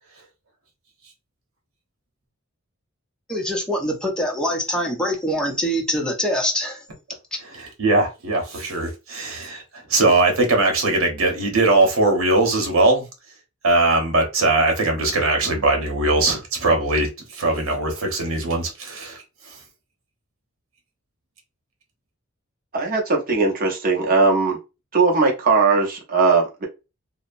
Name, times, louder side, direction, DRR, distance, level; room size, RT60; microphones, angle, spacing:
voice 1, 3.3-6.8, equal, 5° left, -1 dB, 0.6 m, -24 dB
voice 2, 7.5-13.1 13.6-19.6, right 2 dB, 75° right, 2 dB, 0.9 m, -20 dB
voice 3, 22.7-24.6 24.9-26.7, right 4 dB, 45° right, 1 dB, 0.7 m, -19 dB
2.7 x 2.0 x 2.5 m, 0.27 s
head